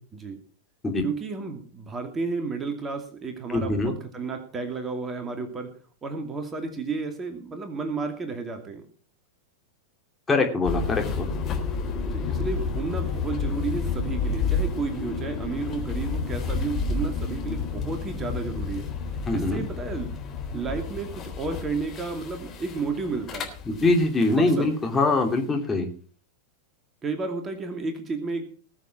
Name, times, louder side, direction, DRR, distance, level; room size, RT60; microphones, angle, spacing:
voice 1, 1.0-5.7 6.0-8.9 12.0-18.9 19.3-20.1 20.5-23.5 24.3-24.7 27.0-28.5, right 4 dB, 20° right, 5 dB, 2.5 m, -32 dB
voice 2, 3.5-3.9 10.3-11.3 19.3-19.6 23.7-25.9, left 2 dB, 15° left, 2 dB, 3.0 m, -23 dB
sound 1, 10.6-24.6, left 4 dB, 30° left, 3.6 m, -30 dB
20.0 x 7.5 x 5.9 m, 0.41 s
figure-of-eight pair, 90°, 0 cm